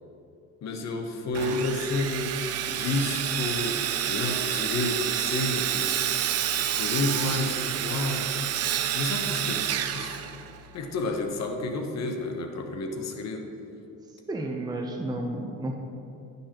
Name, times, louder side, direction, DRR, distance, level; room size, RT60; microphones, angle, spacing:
voice 1, 0.6-2.3 2.7-5.9 6.5-8.3 8.9-10.3 10.7-13.5, left 2 dB, 60° left, 4 dB, 1.0 m, -30 dB
Sawing, 1.3-10.8, right 10 dB, 55° right, 0.5 m, -29 dB
voice 2, 14.3-15.8, right 1 dB, 15° right, 1 dB, 0.7 m, -31 dB
11.5 x 5.4 x 3.0 m, 2.6 s
cardioid pair, 90°, 30 cm